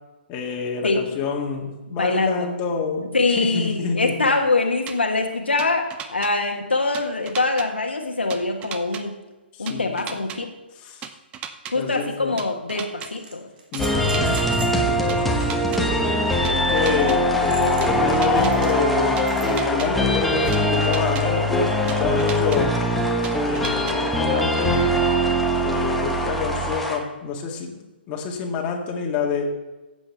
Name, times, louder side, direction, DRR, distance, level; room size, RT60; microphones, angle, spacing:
voice 1, 0.3-4.3 9.5-10.0 10.7-11.1 11.7-12.4 13.7-14.3 14.9-15.9 16.4-22.8 23.4-25.0 25.6-27.8 28.1-29.4, left 5 dB, 25° left, 0 dB, 1.9 m, -28 dB
voice 2, 2.0-2.5 3.1-5.8 6.1-9.2 9.6-10.5 11.7-13.4 25.6-25.7, left 3 dB, 80° left, 2 dB, 1.4 m, -23 dB
sound 1, 4.9-5.0 5.6-6.3 6.9-7.7 8.3-9.0 9.7-10.4 11.0-11.7 12.4-13.1 13.7-14.4 15.1-15.8 16.4-17.2 17.8-18.5 19.2-19.9 20.5-21.2 21.9-22.6 23.2-24.0, right 8 dB, 20° right, 0.7 m, -35 dB
sound 2, 11.7-11.8 12.7-14.8 15.7-20.7 21.4-21.7 23.4-23.5, right 3 dB, 55° right, 2.3 m, -41 dB
sound 3, 13.8-27.0, equal, ahead, 1.1 m, -22 dB
14.0 x 8.1 x 3.4 m, 1.2 s
figure-of-eight pair, 125°, 6 cm